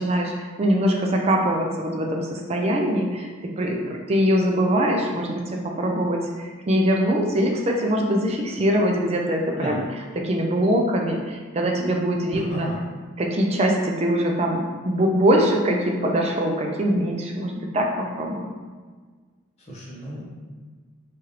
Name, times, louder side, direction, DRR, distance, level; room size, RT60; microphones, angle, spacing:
voice 1, 0.0-9.8 10.2-12.7 13.2-18.5, equal, 30° right, 1 dB, 0.3 m, -23 dB
voice 2, 12.3-12.8 19.6-20.3, equal, 30° left, -8 dB, 0.6 m, -34 dB
2.9 x 2.4 x 3.2 m, 1.5 s
head